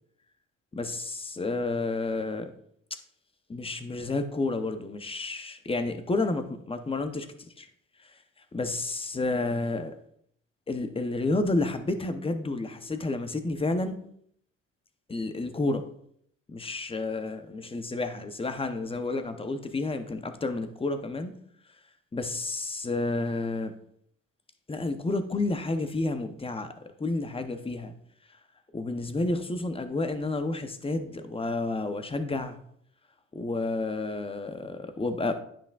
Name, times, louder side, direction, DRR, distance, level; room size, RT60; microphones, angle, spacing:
voice 1, 0.7-2.5 3.5-7.3 7.6-7.7 8.5-10.0 10.7-14.0 15.1-15.8 16.5-21.3 22.1-23.7 24.7-26.7 27.0-27.9 28.7-32.6 33.3-35.3, left 2 dB, 20° left, 9 dB, 0.7 m, -30 dB
9.5 x 5.9 x 2.3 m, 0.68 s
cardioid pair, 90°, 30 cm